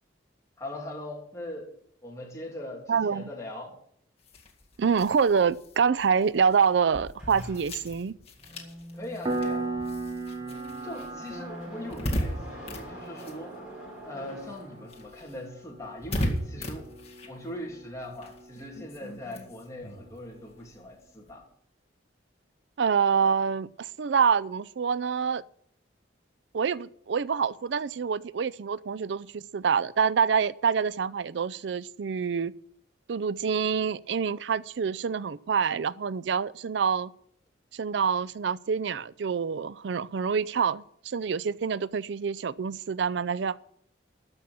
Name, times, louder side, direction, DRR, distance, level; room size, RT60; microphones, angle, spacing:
voice 1, 0.6-1.7 2.0-3.7 8.9-9.6 10.8-13.5 14.0-16.9 17.3-21.4, left 1 dB, 15° left, 2.9 m, -40 dB
voice 2, 2.9-3.3 4.8-8.2 22.8-25.4 26.5-32.5 33.1-37.1 37.7-43.6, right 6 dB, 70° right, 0.4 m, -26 dB
sound 1, 4.2-14.1 14.4-21.3, equal, 30° left, 2.0 m, -38 dB
sound 2, 7.2-15.2, right 1 dB, 5° right, 4.0 m, -45 dB
Piano, 9.3-19.6, right 2 dB, 25° right, 1.2 m, -38 dB
13.5 x 5.8 x 8.5 m
head